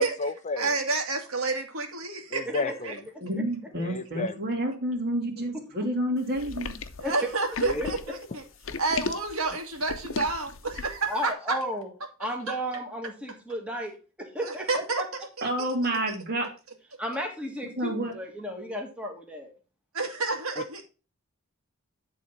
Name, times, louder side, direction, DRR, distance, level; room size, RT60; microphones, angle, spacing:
voice 1, 0.0-0.8 2.3-3.0 3.8-4.4 7.6-7.8, left 3 dB, 35° left, 0.5 m, -32 dB
voice 2, 0.6-3.0 7.0-8.4 8.8-11.6 12.5-12.6 14.4-15.0 15.6-15.7 19.9-20.8, right 3 dB, 80° right, 2.1 m, -29 dB
voice 3, 2.5-2.8 3.3-3.4 7.0-7.3 7.8-7.9 11.1-11.9 12.2-15.1 17.0-19.5, equal, 5° right, 1.8 m, -34 dB
voice 4, 3.2-6.8 15.4-16.5 17.8-18.1, right 1 dB, 45° right, 2.5 m, -29 dB
sound 1, 6.4-11.1, left 4 dB, 65° left, 0.8 m, -36 dB
10.5 x 3.9 x 5.8 m
head